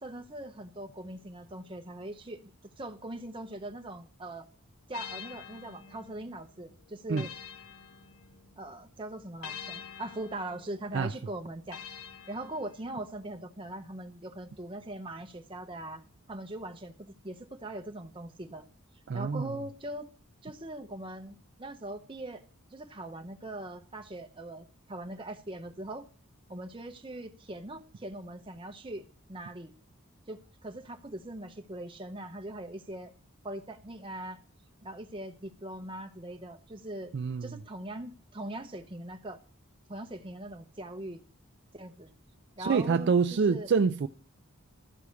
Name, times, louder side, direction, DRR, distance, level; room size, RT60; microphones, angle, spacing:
voice 1, 0.0-2.5 2.8-4.5 4.9-7.3 8.6-11.8 12.3-16.0 16.3-18.6 19.1-20.1 20.4-22.4 22.7-26.1 26.5-29.7 30.3-33.1 33.4-34.4 34.8-37.1 37.4-39.4 39.9-41.2 41.7-42.1 42.6-43.7, right 1 dB, 25° right, 0.8 m, -41 dB
sound 1, 4.9-8.7 9.4-13.1, left 8 dB, 90° left, 0.7 m, -47 dB
voice 2, 19.1-19.6 37.1-37.6 42.6-44.1, right 5 dB, 55° right, 0.4 m, -26 dB
13.0 x 4.9 x 6.9 m
head